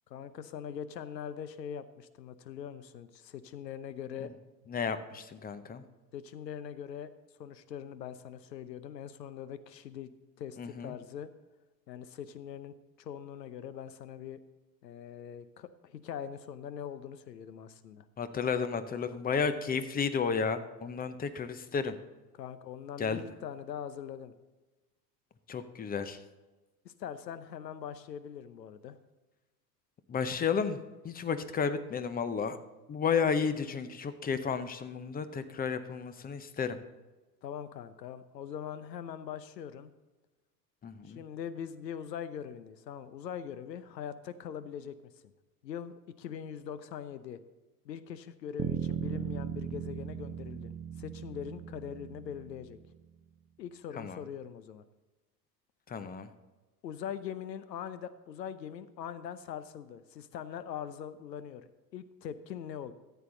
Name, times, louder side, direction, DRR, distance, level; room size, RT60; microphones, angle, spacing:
voice 1, 0.1-4.3 6.1-7.1 7.4-11.3 11.9-14.4 14.8-18.1 22.4-24.3 26.8-29.0 37.4-39.9 41.0-45.1 45.6-47.4 47.8-52.8 53.6-54.8 56.8-62.9, left 8 dB, 80° left, 13 dB, 0.8 m, -42 dB
voice 2, 4.7-5.8 10.6-10.9 18.2-22.0 23.0-23.2 25.5-26.2 30.1-32.6 32.9-36.8 40.8-41.2 53.9-54.2 55.9-56.3, left 6 dB, 20° left, 11 dB, 0.7 m, -32 dB
sound 1, 48.6-53.0, right 9 dB, 15° right, 0.5 m, -38 dB
14.0 x 8.1 x 3.8 m, 1.1 s
figure-of-eight pair, 85°, 50 cm